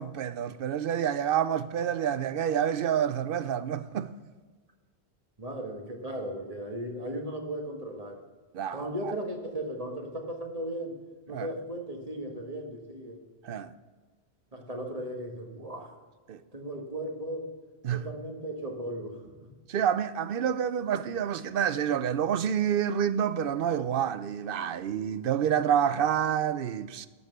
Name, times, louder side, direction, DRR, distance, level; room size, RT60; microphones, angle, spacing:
voice 1, 0.0-4.1 8.5-9.1 11.3-11.5 13.4-13.7 16.3-16.4 17.8-18.0 19.7-27.1, right 9 dB, 65° right, 0.7 m, -28 dB
voice 2, 5.4-8.2 8.7-10.9 11.3-13.2 14.5-15.9 16.5-17.5 17.9-19.5, right 1 dB, 35° right, 1.6 m, -36 dB
12.0 x 5.5 x 7.8 m
omnidirectional pair, 1.1 m